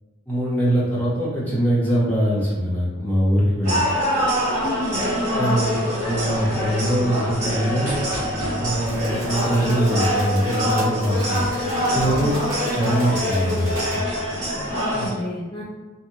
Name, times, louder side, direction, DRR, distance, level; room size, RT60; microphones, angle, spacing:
voice 1, 0.3-3.8 5.3-8.1 8.6-11.5 11.9-12.4 12.7-14.0 14.9-15.2, right 1 dB, 10° left, -8 dB, 0.8 m, -22 dB
sound 1, 3.6-15.1, equal, 35° right, 1.1 m, -24 dB
voice 2, 4.6-5.6 12.1-12.4 14.7-15.6, left 1 dB, 25° left, -6 dB, 0.3 m, -30 dB
sound 2, 8.9-14.0, right 2 dB, 70° right, 0.9 m, -40 dB
2.8 x 2.4 x 2.6 m, 1.3 s
head